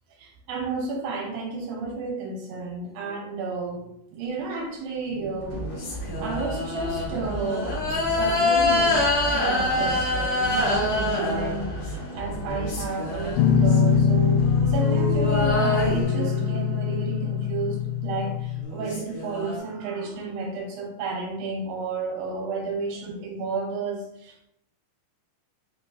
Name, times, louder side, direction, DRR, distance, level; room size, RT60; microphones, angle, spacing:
voice 1, 0.2-3.9 4.1-5.7 6.2-24.5, right 4 dB, 80° right, 0 dB, 2.5 m, -32 dB
sound 1, 5.1-12.1 12.4-13.8 14.4-17.0 18.3-18.4 18.6-19.6, left 2 dB, 60° left, 2.2 m, -26 dB
sound 2, 5.4-16.0, equal, 40° left, 1.3 m, -35 dB
Guitar, 13.4-18.6, left 7 dB, 80° left, 2.1 m, -23 dB
6.2 x 3.1 x 2.6 m, 0.78 s
omnidirectional pair, 4.4 m